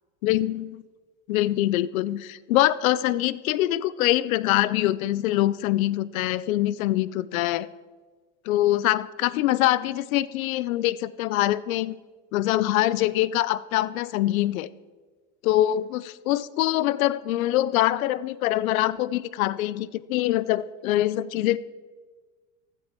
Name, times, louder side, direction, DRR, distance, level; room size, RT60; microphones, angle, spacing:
voice 1, 0.2-0.8 1.3-7.7 8.5-12.0 12.3-14.7 15.4-21.6, left 15 dB, 90° left, 18 dB, 0.6 m, -24 dB
16.0 x 9.8 x 4.4 m, 1.4 s
supercardioid pair, 135°, 40 cm